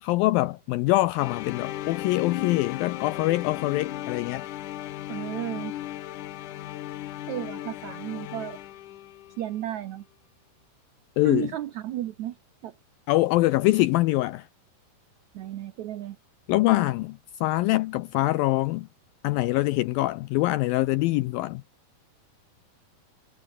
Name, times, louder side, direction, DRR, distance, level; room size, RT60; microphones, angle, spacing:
voice 1, 0.0-4.5 11.2-11.5 13.1-14.5 16.5-18.9 19.2-21.6, left 18 dB, 85° left, 2.1 m, -24 dB
sound 1, 1.2-9.5, left 14 dB, 70° left, 2.1 m, -36 dB
voice 2, 5.1-5.7 7.3-8.6 9.4-10.1 11.2-12.4 12.6-12.8 15.3-16.2, right 13 dB, 85° right, 1.6 m, -33 dB
omnidirectional pair, 4.8 m